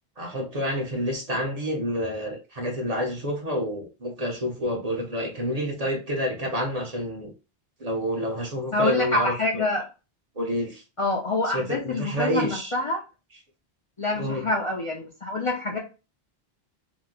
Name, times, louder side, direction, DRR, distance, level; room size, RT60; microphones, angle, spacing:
voice 1, 0.2-7.3 7.8-9.6 10.4-10.8 11.5-12.7 14.1-14.5, equal, 45° right, 0 dB, 0.7 m, -28 dB
voice 2, 8.7-9.9 11.0-13.0 14.0-15.8, left 2 dB, 40° left, -1 dB, 0.5 m, -26 dB
2.9 x 2.0 x 3.5 m, 0.31 s
omnidirectional pair, 1.0 m